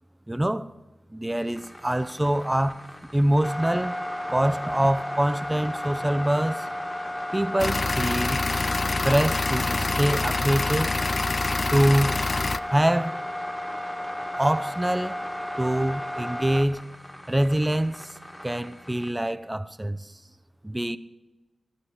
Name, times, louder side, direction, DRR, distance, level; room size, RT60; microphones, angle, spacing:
voice 1, 0.3-0.7 1.1-2.8 3.1-4.0 4.3-6.7 7.3-8.4 9.0-10.9 11.7-12.2 12.7-13.2 14.4-15.3 15.6-16.8 17.3-18.2 18.4-20.1 20.6-21.0, right 1 dB, 15° right, 0.8 m, -25 dB
sound 1, 1.5-19.1, left 1 dB, 15° left, 1.7 m, -34 dB
sound 2, 7.6-12.6, left 3 dB, 45° left, 0.4 m, -26 dB
17.0 x 12.5 x 4.8 m
cardioid pair, 45°, 0 cm